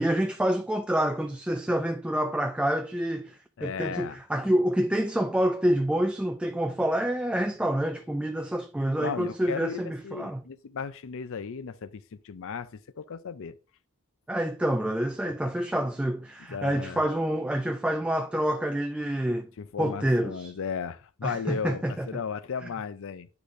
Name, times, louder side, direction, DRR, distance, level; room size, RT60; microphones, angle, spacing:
voice 1, 0.0-10.4 14.3-19.5 19.8-20.5 21.2-22.1, right 1 dB, 5° right, 0.3 m, -27 dB
voice 2, 3.6-4.2 9.0-13.6 15.2-15.5 16.5-17.0 19.6-23.3, left 6 dB, 65° left, 0.5 m, -35 dB
10.0 x 4.9 x 2.6 m
head